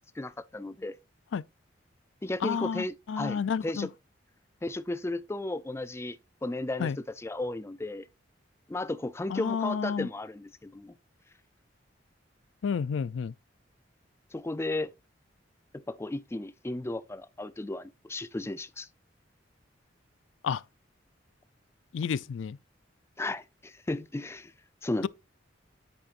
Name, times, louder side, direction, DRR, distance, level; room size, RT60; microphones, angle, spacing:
voice 1, 0.2-1.0 2.2-3.9 4.6-6.2 6.4-6.9 7.2-8.1 8.7-10.9 14.3-14.9 15.9-18.9 23.2-24.5 24.8-25.1, left 2 dB, 15° left, 0.4 m, -34 dB
voice 2, 2.4-3.9 6.8-7.0 9.3-10.1 12.6-13.3 20.4-20.6 21.9-22.6, left 6 dB, 85° left, 0.4 m, -30 dB
8.6 x 7.9 x 2.5 m
head